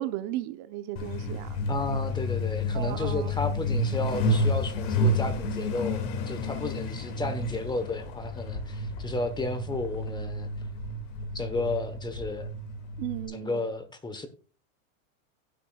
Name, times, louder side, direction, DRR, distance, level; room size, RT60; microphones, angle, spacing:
voice 1, 0.0-1.6 2.7-3.3 13.0-13.6, right 14 dB, 50° right, 0.9 m, -35 dB
Truck, 1.0-13.3, left 1 dB, 55° left, 2.5 m, -30 dB
voice 2, 1.7-10.5 11.3-12.5 13.3-14.3, left 2 dB, 10° left, 1.1 m, -33 dB
15.5 x 7.5 x 2.4 m
supercardioid pair, 125°, 40 cm